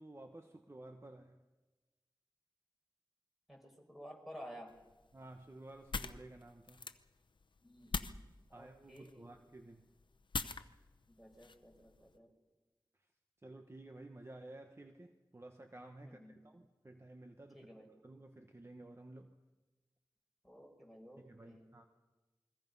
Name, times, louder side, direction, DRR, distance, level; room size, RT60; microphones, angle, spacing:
voice 1, 0.0-1.4 5.1-6.9 8.5-9.9 12.9-13.1 13.4-19.4 21.2-21.9, right 2 dB, 35° right, 5 dB, 1.2 m, -54 dB
voice 2, 3.5-4.7 7.6-9.3 11.1-12.3 16.0-16.4 17.5-17.9 20.4-21.7, equal, ahead, 2 dB, 5.2 m, -54 dB
sound 1, 4.7-12.2, left 4 dB, 80° left, 0.8 m, -45 dB
28.5 x 22.0 x 5.5 m, 1.1 s
wide cardioid pair, 75°, 8 cm